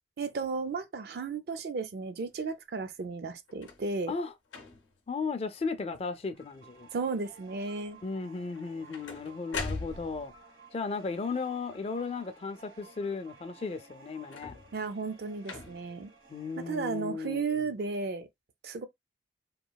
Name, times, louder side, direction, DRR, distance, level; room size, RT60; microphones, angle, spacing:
voice 1, 0.2-4.1 6.9-8.0 14.7-16.1 16.6-18.3 18.6-18.9, right 4 dB, 55° right, 0.4 m, -34 dB
sound 1, 3.5-3.9 4.5-5.0 5.6-6.0 6.2-6.8 8.5-10.4 14.2-14.8 15.4-16.0 16.8-16.9, left 3 dB, 80° left, 0.6 m, -41 dB
voice 2, 5.1-6.9 8.0-10.3 10.7-14.5 16.3-17.7, left 4 dB, 30° left, 0.3 m, -35 dB
sound 2, 6.3-17.0, right 3 dB, 85° right, 1.1 m, -56 dB
2.9 x 2.3 x 2.2 m
head